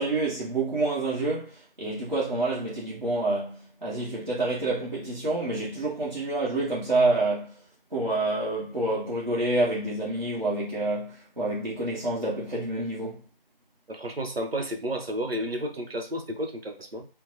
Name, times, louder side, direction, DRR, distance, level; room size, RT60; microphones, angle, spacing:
voice 1, 0.0-7.6 7.9-13.2, right 2 dB, 50° right, 1.1 m, -28 dB
voice 2, 13.9-17.1, equal, 80° right, 0.8 m, -32 dB
3.6 x 2.2 x 2.7 m
figure-of-eight pair, 175°, 29 cm